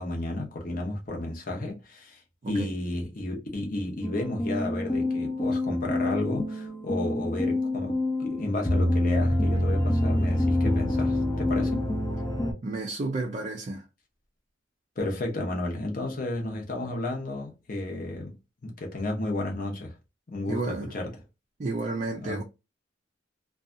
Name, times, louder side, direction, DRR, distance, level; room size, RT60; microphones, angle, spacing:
voice 1, 0.0-2.2 2.5-11.8 15.0-18.4 18.6-19.9 20.3-21.1 22.2-22.4, left 2 dB, 45° left, 0.8 m, -32 dB
sound 1, 4.0-12.5, left 1 dB, 20° left, 0.6 m, -26 dB
voice 2, 12.6-13.8 20.5-20.9 21.6-22.4, right 2 dB, 40° right, 0.4 m, -31 dB
2.6 x 2.3 x 2.5 m
head